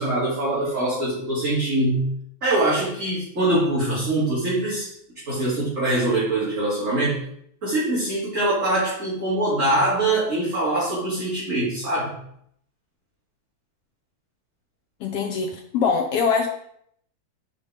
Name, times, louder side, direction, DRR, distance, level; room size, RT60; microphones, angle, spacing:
voice 1, 0.0-2.1 2.4-4.9 5.3-7.2 7.6-12.1, right 1 dB, 25° right, -10 dB, 2.9 m, -23 dB
voice 2, 15.0-16.5, left 6 dB, 80° left, 3 dB, 1.3 m, -23 dB
7.0 x 5.4 x 4.9 m, 0.69 s
omnidirectional pair, 3.7 m